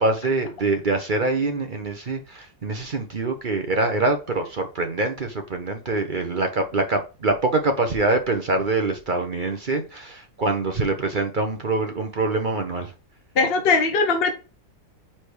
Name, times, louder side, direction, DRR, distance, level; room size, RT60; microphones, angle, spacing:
voice 1, 0.0-12.9, right 2 dB, 45° right, 0.6 m, -24 dB
voice 2, 13.4-14.4, left 4 dB, 45° left, 0.8 m, -20 dB
5.0 x 4.3 x 4.7 m
omnidirectional pair, 2.0 m